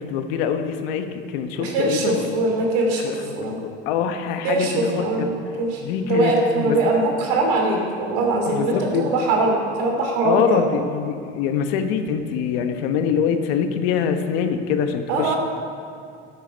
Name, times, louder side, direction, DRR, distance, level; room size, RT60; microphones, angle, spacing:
voice 1, 0.0-2.3 3.0-3.5 3.8-5.3 5.8-7.0 8.4-9.1 10.2-15.3, left 7 dB, 80° left, 7 dB, 1.1 m, -24 dB
voice 2, 1.6-3.6 4.4-5.3 5.6-10.6 15.1-15.4, right 2 dB, 75° right, 1 dB, 2.9 m, -22 dB
13.0 x 8.1 x 5.6 m, 2.3 s
supercardioid pair, 110°, 30 cm